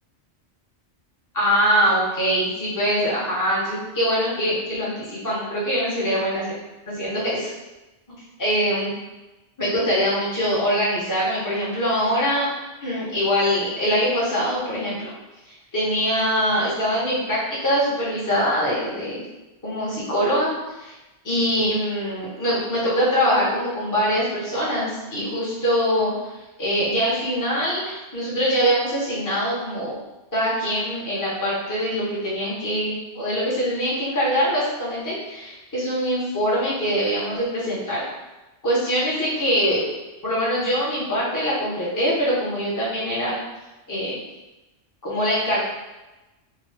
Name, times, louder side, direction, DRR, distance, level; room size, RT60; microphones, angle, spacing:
voice 1, 1.3-6.5 6.9-7.5 8.4-8.9 9.6-12.5 12.8-15.1 15.5-19.2 19.6-20.5 20.8-20.9 21.2-26.3 26.6-30.0 30.3-38.0 38.6-39.8 40.2-43.4 43.9-44.2 45.0-45.6, equal, 15° left, -8 dB, 1.0 m, -23 dB
3.6 x 2.6 x 3.4 m, 1.0 s
omnidirectional pair, 1.2 m